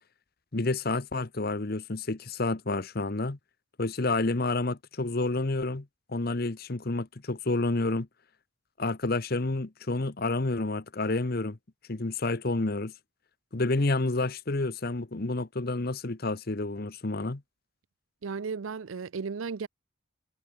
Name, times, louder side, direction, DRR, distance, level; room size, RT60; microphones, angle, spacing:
voice 1, 0.5-3.4 3.8-8.1 8.8-11.6 11.9-12.9 13.5-17.4, left 2 dB, 45° left, 1.0 m, -29 dB
voice 2, 18.2-19.7, right 5 dB, 75° right, 0.5 m, -34 dB
head